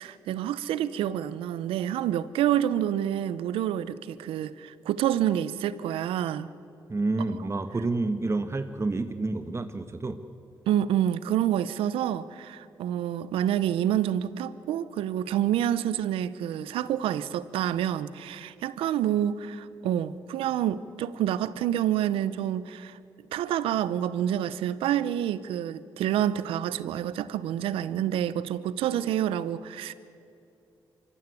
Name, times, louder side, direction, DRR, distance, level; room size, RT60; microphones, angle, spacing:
voice 1, 0.0-6.5 10.7-23.0 23.3-29.9, right 11 dB, 85° right, 17 dB, 0.7 m, -28 dB
voice 2, 6.9-10.2, right 3 dB, 30° right, 9 dB, 1.4 m, -29 dB
25.0 x 14.5 x 9.6 m, 2.7 s
supercardioid pair, 50°, 9 cm